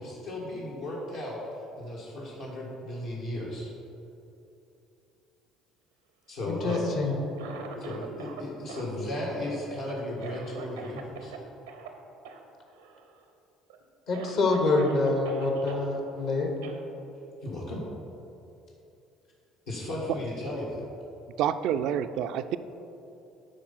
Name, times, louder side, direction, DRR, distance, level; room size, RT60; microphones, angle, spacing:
voice 1, 0.0-1.4 1.8-3.7 6.3-6.9 7.8-11.3 17.4-17.8 19.7-20.8, left 1 dB, 80° left, -7 dB, 1.6 m, -35 dB
voice 2, 6.5-7.2 14.1-16.5, left 3 dB, 65° left, 2 dB, 1.3 m, -26 dB
Cough, 6.5-8.4 8.7-11.4 11.7-11.9 12.2-12.4 12.7-13.2 13.7-13.8 14.1-15.9 16.6-16.8, right 5 dB, 90° right, 0.7 m, -43 dB
voice 3, 21.4-22.6, right 9 dB, 65° right, 11 dB, 0.3 m, -28 dB
8.9 x 4.5 x 5.7 m, 2.8 s
hypercardioid pair, 65°, 0 cm